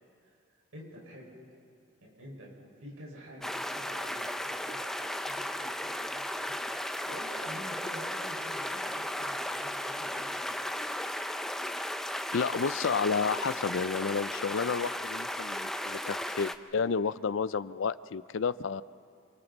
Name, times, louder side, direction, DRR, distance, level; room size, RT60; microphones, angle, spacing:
voice 1, 0.7-1.3 2.0-4.3 4.6-10.6, equal, 90° right, -3 dB, 5.6 m, -48 dB
sound 1, 3.4-16.5, left 1 dB, ahead, 0.5 m, -35 dB
voice 2, 12.3-18.8, left 5 dB, 65° left, 16 dB, 0.5 m, -31 dB
27.5 x 26.5 x 4.1 m, 2.3 s
head